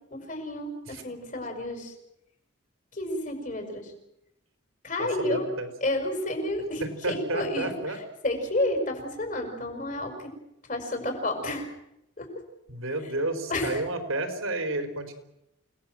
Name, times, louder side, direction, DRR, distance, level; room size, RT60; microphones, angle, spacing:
voice 1, 0.1-1.9 2.9-3.9 4.8-5.4 5.8-7.7 8.2-10.3 10.7-11.7 12.2-12.3 13.5-13.8, left 1 dB, 40° left, 4 dB, 5.6 m, -30 dB
voice 2, 5.0-5.7 7.0-8.0 12.7-15.1, right 2 dB, 85° right, 7 dB, 4.3 m, -31 dB
29.0 x 19.0 x 7.7 m, 0.85 s
head